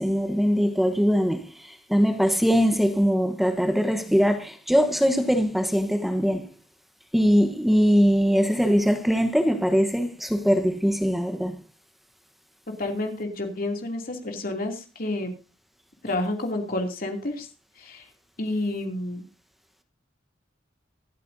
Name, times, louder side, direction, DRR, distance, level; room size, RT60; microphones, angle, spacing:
voice 1, 0.0-6.5 7.1-11.6, equal, ahead, 1.0 m, -22 dB
voice 2, 12.8-15.3 16.0-17.5 17.8-18.1 18.4-19.2, left 2 dB, 50° left, 2.7 m, -29 dB
24.0 x 8.5 x 2.7 m
head